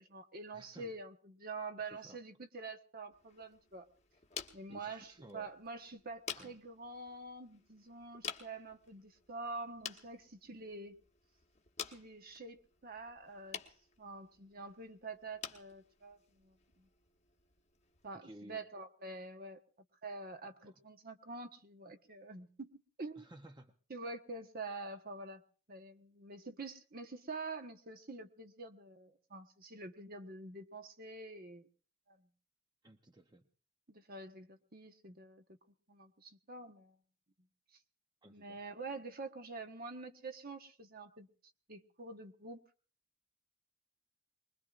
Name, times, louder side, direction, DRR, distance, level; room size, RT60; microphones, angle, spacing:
voice 1, 0.0-3.9 4.5-11.0 11.9-13.6 14.0-16.9 18.0-19.6 20.0-22.7 23.0-23.3 23.9-25.4 25.7-31.7 32.1-32.3 33.9-35.4 35.9-37.0 38.3-41.3 41.7-42.6, right 3 dB, 40° right, 6 dB, 1.2 m, -47 dB
voice 2, 0.5-0.9 1.9-2.2 4.7-5.5 6.4-6.6 18.1-18.6 20.6-20.8 23.2-23.7 32.8-33.4 38.2-38.6, right 1 dB, 20° right, 5 dB, 0.7 m, -55 dB
sound 1, 3.1-18.2, left 7 dB, 30° left, 1.1 m, -51 dB
24.0 x 21.0 x 2.5 m, 0.38 s
head